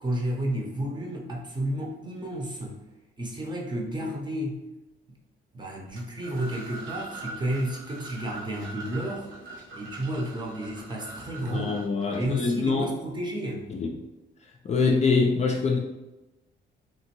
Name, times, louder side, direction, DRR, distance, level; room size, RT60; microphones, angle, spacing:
voice 1, 0.0-2.8 3.2-4.6 5.5-9.3 9.7-11.8 12.1-13.7, right 1 dB, 20° right, -1 dB, 0.7 m, -31 dB
sound 1, 5.9-12.7, right 3 dB, 75° right, 1.0 m, -42 dB
voice 2, 11.5-12.9 13.7-14.0 14.6-15.8, left 4 dB, 35° left, 1 dB, 0.4 m, -24 dB
2.9 x 2.6 x 2.9 m, 1.0 s
cardioid pair, 90°, 20 cm